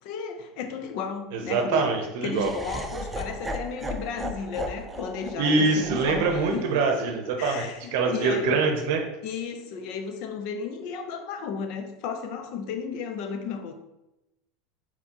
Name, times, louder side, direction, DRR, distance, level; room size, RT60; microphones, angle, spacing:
voice 1, 0.0-1.9 2.2-6.7 7.4-8.6 9.2-13.8, left 6 dB, 60° left, 7 dB, 0.7 m, -34 dB
voice 2, 1.3-2.5 5.4-9.0, right 4 dB, 75° right, 4 dB, 0.7 m, -24 dB
Laughter, 2.3-8.5, right 1 dB, 15° right, 0.5 m, -37 dB
4.4 x 4.2 x 2.9 m, 0.94 s
supercardioid pair, 125°, 0 cm